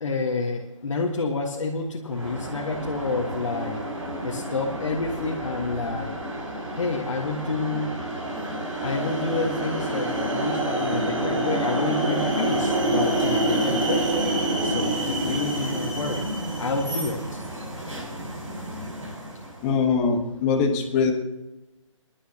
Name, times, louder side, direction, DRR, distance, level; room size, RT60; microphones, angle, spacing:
voice 1, 0.0-3.9 4.2-6.2 6.8-8.0 8.8-14.1 14.6-16.3 16.6-17.4, left 3 dB, 70° left, -1 dB, 1.7 m, -29 dB
sound 1, 2.1-19.6, right 1 dB, 70° right, 6.2 m, -28 dB
voice 2, 19.6-21.1, left 5 dB, 20° left, 1 dB, 1.5 m, -22 dB
30.0 x 11.0 x 2.9 m, 1.0 s
hypercardioid pair, 160°, 17 cm